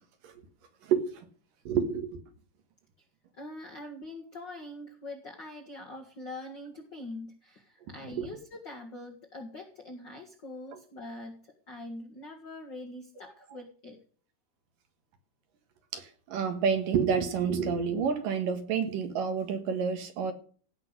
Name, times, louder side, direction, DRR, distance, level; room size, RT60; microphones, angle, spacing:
voice 1, 0.8-1.3 1.6-2.2 8.2-8.3 15.9-20.3, right 6 dB, 65° right, 3.2 m, -29 dB
voice 2, 3.4-14.0, left 1 dB, 40° left, 1.8 m, -43 dB
16.5 x 5.9 x 8.1 m
omnidirectional pair, 4.3 m